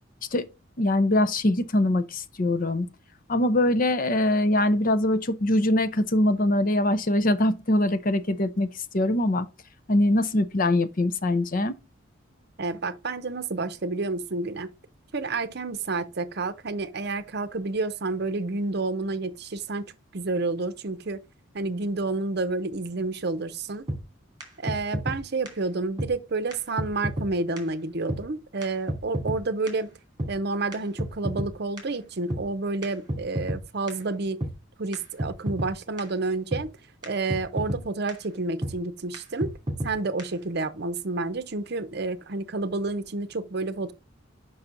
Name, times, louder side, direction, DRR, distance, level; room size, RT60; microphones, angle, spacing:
voice 1, 0.8-2.9 3.3-8.7 8.9-9.5 9.9-11.8, left 1 dB, 45° left, 0.6 m, -23 dB
voice 2, 12.6-14.7 15.1-21.2 21.5-23.8 24.6-29.9 30.3-34.4 34.8-36.7 37.0-39.5 39.8-43.9, right 3 dB, 55° right, 0.7 m, -29 dB
sound 1, 23.9-24.0 24.4-24.5 24.7-25.2 25.5-25.6 26.0-26.1 26.5-26.6 26.8-27.3 27.6-27.7 28.1-28.2 28.6-28.7 28.9-29.4 29.7-29.8 30.2-30.3 30.7-31.5 31.8-31.9 32.3-32.4 32.8-32.9 33.1-33.6 33.9-34.0 34.4-34.5 34.9-35.0 35.2-35.7 36.0-36.1 36.5-36.6 37.0-37.1 37.3-37.8 38.1-38.2 38.6-38.7 39.1-39.2 39.4-39.9 40.2-40.3, right 1 dB, 20° right, 2.5 m, -29 dB
6.0 x 5.5 x 3.9 m
head